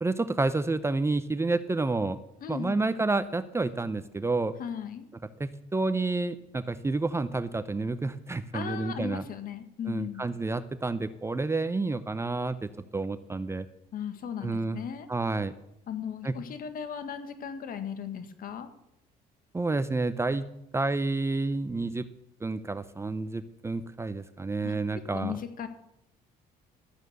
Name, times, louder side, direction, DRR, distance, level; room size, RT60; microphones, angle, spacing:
voice 1, 0.0-2.2 2.5-4.5 5.4-9.2 9.9-13.7 14.4-14.8 15.1-15.5 16.2-16.4 19.5-20.5 20.7-22.1 22.4-25.3, right 3 dB, 15° right, 12 dB, 0.7 m, -29 dB
voice 2, 2.4-2.8 4.6-5.1 8.5-10.3 13.9-15.1 15.9-18.7 24.6-24.7 25.1-25.7, left 8 dB, 55° left, 9 dB, 1.7 m, -37 dB
13.0 x 9.0 x 6.8 m, 0.82 s
cardioid pair, 110°, 17 cm